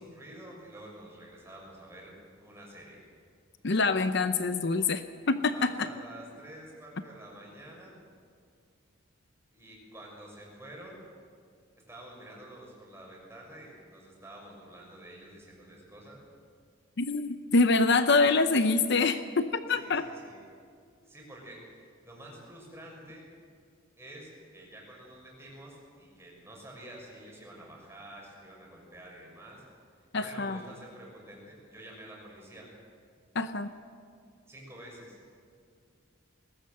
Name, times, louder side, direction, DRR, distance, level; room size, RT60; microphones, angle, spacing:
voice 1, 0.0-2.1 2.4-3.0 5.5-8.0 9.5-11.0 11.9-16.2 19.7-20.4 21.0-23.3 24.0-29.6 30.1-32.7 34.5-35.2, right 1 dB, 10° right, -2 dB, 6.4 m, -49 dB
voice 2, 3.6-5.0 5.3-5.9 17.0-20.0 30.1-30.6 33.3-33.7, left 3 dB, 55° left, 10 dB, 0.7 m, -25 dB
21.0 x 19.0 x 7.9 m, 2.2 s
head